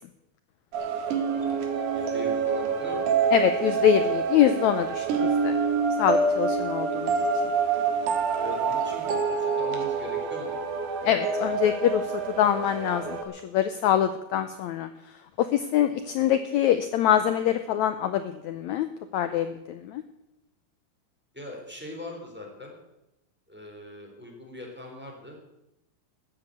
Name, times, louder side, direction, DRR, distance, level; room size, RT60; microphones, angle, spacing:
sound 1, 0.7-13.2, right 5 dB, 65° right, 3.0 m, -27 dB
voice 1, 1.9-3.0 8.3-10.6 21.3-22.8 23.5-25.4, left 1 dB, 5° right, -1 dB, 3.3 m, -41 dB
voice 2, 3.3-5.0 5.4-5.5 6.0-7.1 11.0-12.0 12.4-14.9 15.4-18.9 19.1-20.0, left 10 dB, 80° left, 10 dB, 1.6 m, -24 dB
14.0 x 9.9 x 7.9 m, 0.87 s
omnidirectional pair, 4.1 m